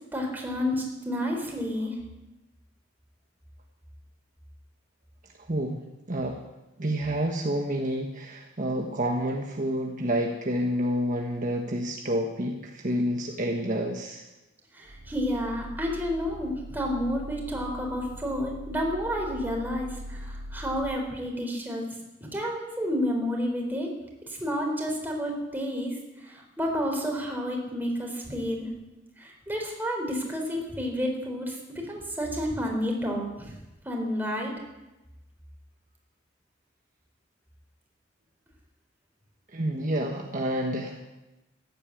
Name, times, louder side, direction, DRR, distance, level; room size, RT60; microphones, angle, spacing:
voice 1, 0.1-2.0 14.7-21.9 22.2-23.9 24.4-28.7 29.2-33.5 33.9-34.5, equal, 10° right, 0 dB, 3.8 m, -30 dB
voice 2, 5.5-5.8 6.1-6.4 6.8-14.2 39.5-41.0, equal, 40° right, 1 dB, 1.4 m, -29 dB
sound 1, 14.9-20.8, equal, 55° right, 2.8 m, -41 dB
15.0 x 11.0 x 8.4 m, 1.0 s
head